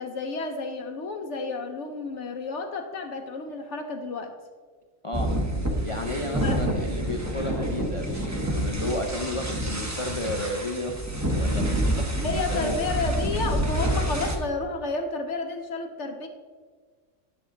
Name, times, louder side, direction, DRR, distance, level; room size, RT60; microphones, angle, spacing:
voice 1, 0.0-4.3 6.4-6.6 12.2-16.3, left 3 dB, 65° left, 5 dB, 1.0 m, -31 dB
voice 2, 5.0-5.3 5.8-11.0 11.4-12.8, left 1 dB, 40° left, 3 dB, 0.4 m, -32 dB
sound 1, 5.1-14.4, right 1 dB, 15° right, 0.9 m, -28 dB
11.0 x 6.3 x 3.8 m, 1.5 s
omnidirectional pair, 1.3 m